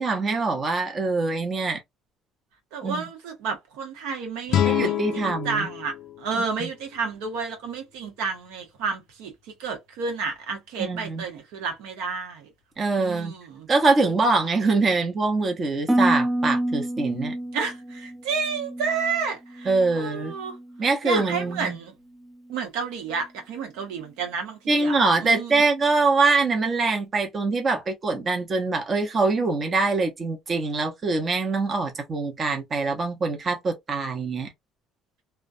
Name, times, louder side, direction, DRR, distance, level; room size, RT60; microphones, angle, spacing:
voice 1, 0.0-1.8 2.8-3.1 4.6-5.7 6.6-6.7 10.8-11.3 12.8-13.3 13.7-17.3 19.7-20.3 20.8-21.8 24.7-34.5, right 3 dB, 35° right, 0.8 m, -24 dB
voice 2, 2.7-9.3 9.6-12.5 13.0-13.7 17.5-20.6 21.0-21.9 22.5-25.6, right 5 dB, 90° right, 0.9 m, -31 dB
sound 1, 4.5-7.5, left 11 dB, 60° left, 0.3 m, -28 dB
Harp, 15.9-20.0 20.3-20.8 21.3-21.7, right 1 dB, 5° right, 0.4 m, -28 dB
2.3 x 2.2 x 2.5 m
cardioid pair, 100°, 0 cm